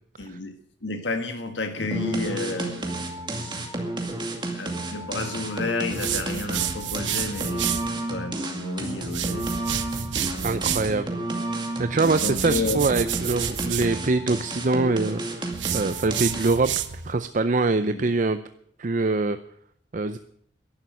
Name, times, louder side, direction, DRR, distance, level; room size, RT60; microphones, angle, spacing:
voice 1, 0.2-0.6 0.8-3.1 4.5-9.5 10.2-10.5 12.1-12.8 17.8-18.1, left 3 dB, 75° left, 6 dB, 1.5 m, -31 dB
sound 1, 1.9-16.7, right 2 dB, 25° right, 2.3 m, -31 dB
sound 2, 5.9-7.9 9.0-10.9 12.0-13.9 15.5-17.1, right 9 dB, 85° right, 1.0 m, -30 dB
voice 2, 10.4-11.1 11.8-18.4 18.8-19.4 19.9-20.2, right 3 dB, 45° right, 11 dB, 0.6 m, -24 dB
11.5 x 10.5 x 9.3 m, 0.67 s
head